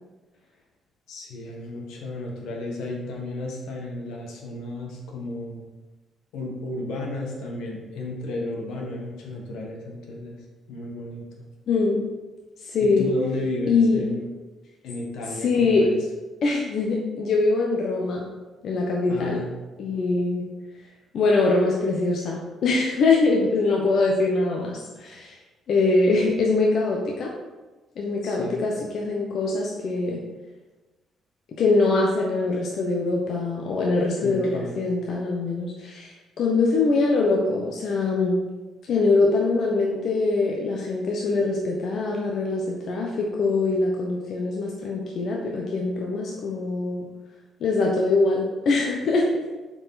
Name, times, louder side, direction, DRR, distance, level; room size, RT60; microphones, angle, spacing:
voice 1, 1.1-5.6 6.3-10.4 10.7-11.4 12.8-14.3 14.8-16.0 19.1-19.5 28.2-28.6 34.2-34.7, left 2 dB, 85° left, 0 dB, 1.5 m, -33 dB
voice 2, 11.7-12.1 12.6-13.1 13.7-14.0 15.4-15.9 16.4-18.3 18.6-19.4 19.8-20.5 21.1-25.4 25.7-27.3 28.0-30.2 31.6-38.4 38.9-47.1 47.6-49.3, left 3 dB, 65° left, -1 dB, 1.0 m, -23 dB
7.2 x 4.8 x 4.2 m, 1.2 s
cardioid pair, 90°, 0 cm